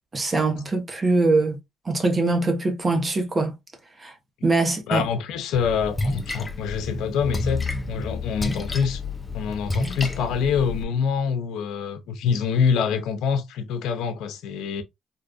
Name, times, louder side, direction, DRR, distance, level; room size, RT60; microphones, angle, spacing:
voice 1, 0.1-1.6 1.8-3.5 4.0-4.1 4.4-5.0, right 3 dB, 30° right, 1.1 m, -22 dB
voice 2, 4.9-9.0 9.3-14.8, left 6 dB, 85° left, 0.6 m, -25 dB
Splash splatter, 5.5-10.8, left 2 dB, 20° left, 0.6 m, -30 dB
3.8 x 2.5 x 2.4 m
cardioid pair, 90°, 0 cm